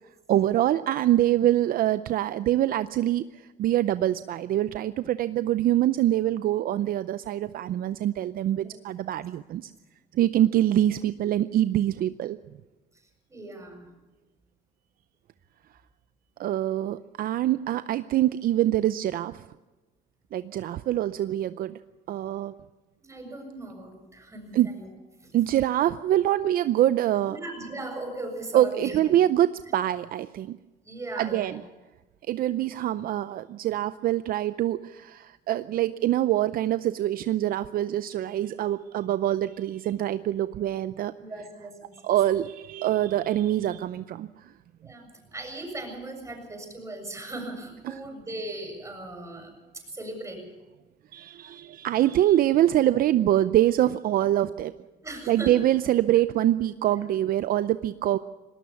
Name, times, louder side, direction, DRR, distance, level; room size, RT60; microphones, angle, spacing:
voice 1, 0.3-9.7 10.1-12.4 16.4-19.5 20.3-21.8 22.1-22.5 24.5-24.7 25.3-27.4 28.5-30.6 31.2-31.6 32.3-41.1 42.0-44.5 47.8-47.9 51.1-54.8 55.3-58.2, right 13 dB, 60° right, 13 dB, 0.6 m, -24 dB
voice 2, 13.3-13.9 23.0-24.9 25.2-25.3 27.3-29.1 30.8-31.6 41.2-41.9 44.8-45.1 45.3-50.4 55.0-55.6 57.0-57.2, right 2 dB, 15° right, 4 dB, 7.3 m, -38 dB
19.0 x 19.0 x 7.1 m, 1.1 s
cardioid pair, 110°, 17 cm